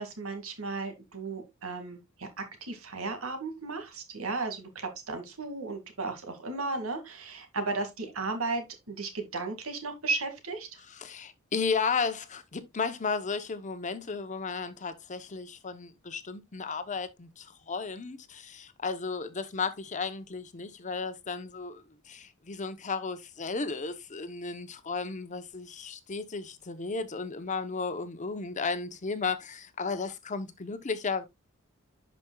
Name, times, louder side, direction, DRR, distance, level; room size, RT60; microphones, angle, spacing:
voice 1, 0.0-10.8, right 3 dB, 85° right, 2.1 m, -35 dB
voice 2, 10.9-31.3, left 4 dB, 35° left, 0.8 m, -34 dB
11.0 x 5.2 x 2.3 m
head